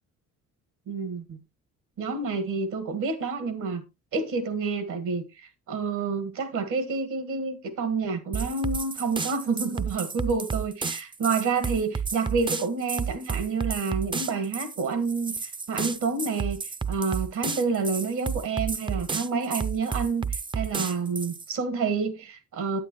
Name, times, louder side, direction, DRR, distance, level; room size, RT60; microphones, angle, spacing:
voice 1, 0.9-1.4 2.0-3.8 4.1-16.6 16.9-22.8, right 4 dB, 80° right, 1.8 m, -29 dB
sound 1, 8.3-21.5, right 5 dB, 15° right, 0.4 m, -31 dB
9.1 x 8.5 x 3.0 m
cardioid pair, 90°, 30 cm